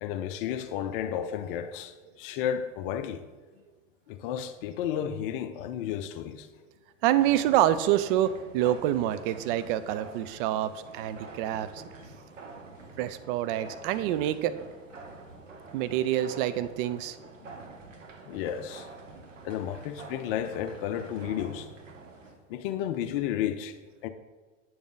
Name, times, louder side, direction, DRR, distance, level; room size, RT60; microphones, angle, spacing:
voice 1, 0.0-3.3 4.1-6.5 18.2-18.9 19.4-21.7 22.5-24.1, left 10 dB, 45° left, 0.6 m, -32 dB
voice 2, 7.0-11.8 13.0-14.5 15.7-17.2, right 12 dB, 45° right, 0.6 m, -27 dB
sound 1, 7.1-22.4, right 3 dB, 85° right, 1.3 m, -47 dB
8.7 x 7.0 x 3.9 m
figure-of-eight pair, 90°, 37 cm